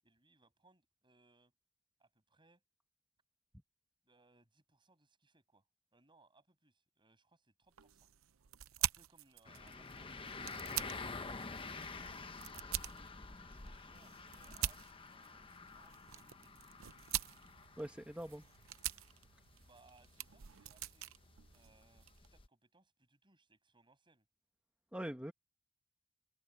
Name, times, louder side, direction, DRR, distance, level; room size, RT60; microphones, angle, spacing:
voice 1, 0.0-1.5 2.0-2.6 4.0-5.7 5.9-8.1 8.8-10.6 11.0-14.8 15.1-16.6 18.4-18.6 19.6-21.2 21.5-24.3, right 3 dB, 25° right, 7.5 m, -70 dB
sound 1, 7.7-22.3, right 13 dB, 90° right, 0.7 m, -45 dB
sound 2, 9.5-22.5, left 4 dB, 25° left, 1.0 m, -49 dB
voice 2, 17.8-18.4 24.9-25.3, equal, 5° right, 1.2 m, -43 dB
head